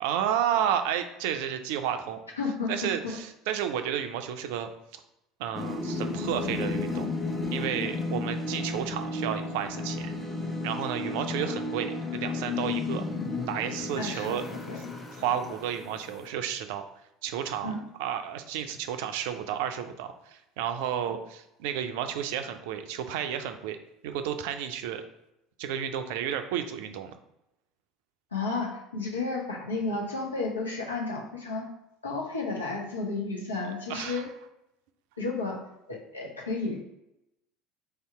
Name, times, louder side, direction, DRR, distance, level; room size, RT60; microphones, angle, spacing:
voice 1, 0.0-2.2 2.7-5.0 5.4-7.1 7.5-10.1 10.6-13.0 13.5-14.4 15.2-16.8 17.2-17.7 18.0-23.8 24.0-25.0 25.6-27.1 33.9-34.2, right 9 dB, 65° right, 8 dB, 0.4 m, -31 dB
voice 2, 2.4-3.2 11.4-11.5 14.0-14.9 17.6-17.8 28.3-31.7 32.0-34.3 35.2-35.6 35.9-36.8, left 3 dB, 85° left, -1 dB, 0.7 m, -32 dB
sound 1, 5.5-16.2, left 3 dB, 25° left, 0.7 m, -33 dB
3.3 x 2.8 x 4.6 m, 0.86 s
figure-of-eight pair, 65°, 0 cm